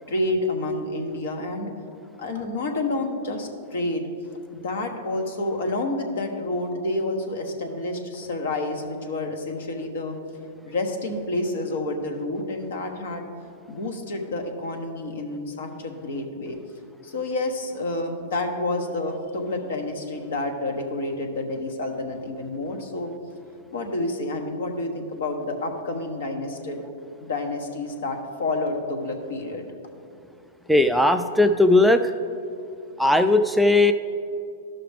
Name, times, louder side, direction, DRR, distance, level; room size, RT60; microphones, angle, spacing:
voice 1, 0.1-1.7 2.2-4.1 4.5-10.2 10.7-13.2 13.7-16.6 17.0-23.1 23.7-26.8 27.2-29.7, left 2 dB, 75° left, 3 dB, 1.2 m, -29 dB
voice 2, 30.7-32.1 33.0-33.9, left 2 dB, ahead, 6 dB, 0.3 m, -18 dB
12.5 x 5.8 x 3.4 m, 2.6 s
hypercardioid pair, 125°, 0 cm